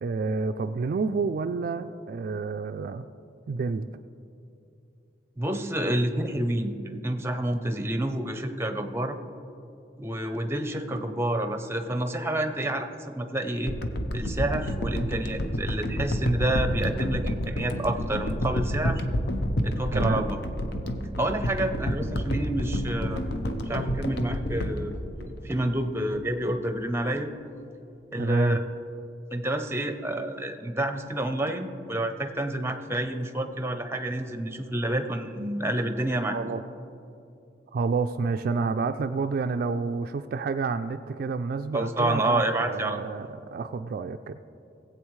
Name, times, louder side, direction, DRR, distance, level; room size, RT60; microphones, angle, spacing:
voice 1, 0.0-3.1 3.5-3.9 19.9-20.2 28.2-28.6 36.3-36.6 37.7-44.4, right 4 dB, 55° right, 8 dB, 0.3 m, -29 dB
voice 2, 5.4-9.2 10.0-13.7 14.1-19.0 19.6-20.4 21.2-23.2 23.7-27.3 28.1-28.6 29.3-36.4 41.7-43.0, right 1 dB, 15° right, 7 dB, 0.6 m, -29 dB
sound 1, 13.7-25.9 26.4-26.5, equal, 65° left, 0.7 m, -29 dB
19.0 x 8.0 x 3.2 m, 2.7 s
head